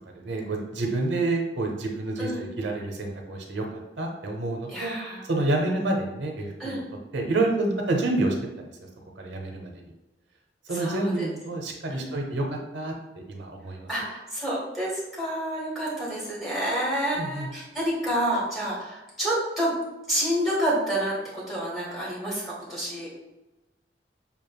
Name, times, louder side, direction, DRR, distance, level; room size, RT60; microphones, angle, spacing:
voice 1, 0.1-4.9 5.3-6.8 7.1-8.7 9.2-9.9 10.7-13.9 17.1-17.5, right 2 dB, 90° right, 1 dB, 0.9 m, -28 dB
voice 2, 4.7-5.2 6.6-6.8 10.7-11.3 11.9-12.2 13.9-19.7 20.1-23.1, right 1 dB, ahead, -6 dB, 1.4 m, -29 dB
7.1 x 2.5 x 2.3 m, 1.0 s
head